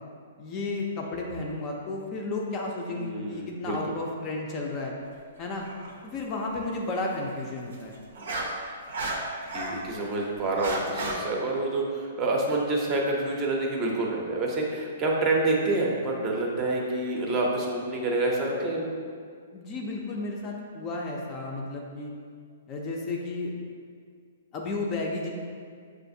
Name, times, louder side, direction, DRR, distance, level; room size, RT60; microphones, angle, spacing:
voice 1, 0.4-4.9 5.4-5.7 6.0-8.0 19.5-22.1 22.7-23.5 24.5-25.3, left 2 dB, 25° left, -1 dB, 0.4 m, -33 dB
voice 2, 2.9-3.8 9.5-19.0, right 2 dB, 25° right, -1 dB, 0.6 m, -27 dB
sound 1, 5.6-5.9 7.7-9.8 10.2-11.2, right 2 dB, 85° right, 0.7 m, -33 dB
6.3 x 2.4 x 2.6 m, 2.1 s
hypercardioid pair, 160°, 0 cm